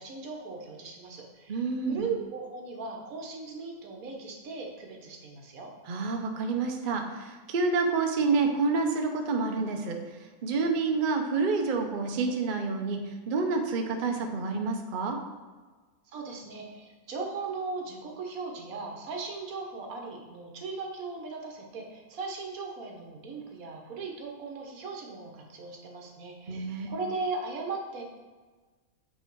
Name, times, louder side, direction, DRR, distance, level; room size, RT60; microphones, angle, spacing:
voice 1, 0.0-1.6 1.9-5.7 16.1-28.0, right 4 dB, 70° right, 1 dB, 1.5 m, -38 dB
voice 2, 1.5-2.1 5.9-10.0 10.4-15.2 26.5-26.9, right 4 dB, 50° right, 3 dB, 0.6 m, -28 dB
8.1 x 3.3 x 4.5 m, 1.4 s
omnidirectional pair, 1.5 m